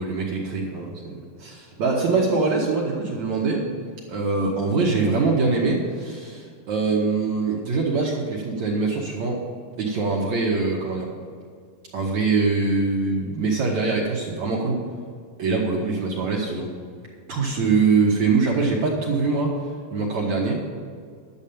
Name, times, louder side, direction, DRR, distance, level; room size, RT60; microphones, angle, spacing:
voice 1, 0.0-3.7 4.1-9.4 9.8-11.1 11.9-14.8 15.4-16.7 17.3-20.6, right 4 dB, 65° right, -3 dB, 1.9 m, -23 dB
11.5 x 7.3 x 7.1 m, 2.1 s
omnidirectional pair, 4.9 m